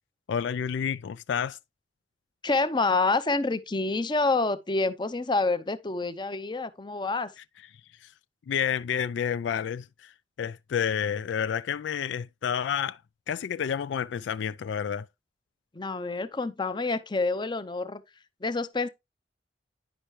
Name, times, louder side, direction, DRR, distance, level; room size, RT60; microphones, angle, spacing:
voice 1, 0.3-1.6 8.0-8.1 8.5-10.1 10.4-13.0 13.3-15.1, left 8 dB, 75° left, 0.3 m, -29 dB
voice 2, 2.4-7.3 15.7-18.0 18.4-18.9, left 3 dB, 25° left, 0.6 m, -27 dB
10.0 x 5.5 x 3.1 m
head